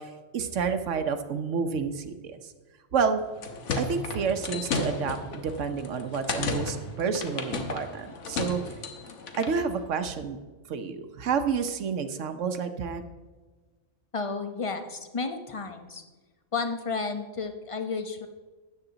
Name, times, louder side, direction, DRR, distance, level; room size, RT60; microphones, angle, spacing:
voice 1, 0.0-2.4 2.9-3.2 3.8-8.6 9.4-10.4 10.7-13.0, right 6 dB, 75° right, 8 dB, 1.1 m, -29 dB
sound 1, 3.2-9.6, left 3 dB, 70° left, 1.4 m, -34 dB
voice 2, 14.1-16.0 16.5-18.3, left 4 dB, 30° left, 7 dB, 0.8 m, -32 dB
13.0 x 9.2 x 3.9 m, 1.3 s
omnidirectional pair, 1.3 m